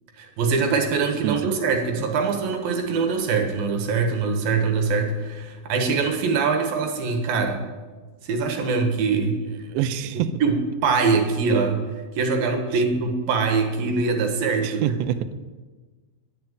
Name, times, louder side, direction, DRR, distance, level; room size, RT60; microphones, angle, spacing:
voice 1, 0.2-7.6 8.2-9.4 10.4-10.5 10.8-11.8 12.2-15.0, right 4 dB, 65° right, 5 dB, 2.9 m, -23 dB
voice 2, 1.2-1.6 9.7-10.3 12.7-12.8 14.6-15.4, right 10 dB, 90° right, 12 dB, 2.9 m, -26 dB
10.5 x 10.5 x 8.9 m, 1.3 s
omnidirectional pair, 4.8 m